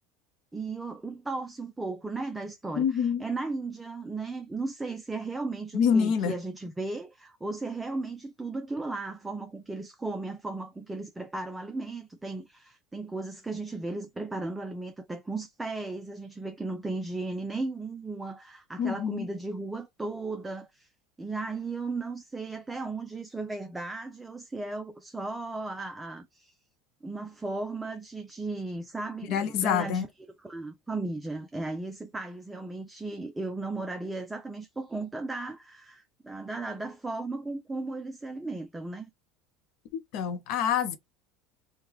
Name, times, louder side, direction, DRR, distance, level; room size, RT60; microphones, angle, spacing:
voice 1, 0.5-20.9 21.2-26.5 27.0-30.1 30.4-39.1, right 3 dB, 10° right, 0.4 m, -36 dB
voice 2, 2.8-3.2 5.7-6.4 18.8-19.3 29.3-30.1 39.9-41.0, left 7 dB, 60° left, 0.6 m, -26 dB
3.0 x 2.1 x 3.5 m
supercardioid pair, 120°, 0 cm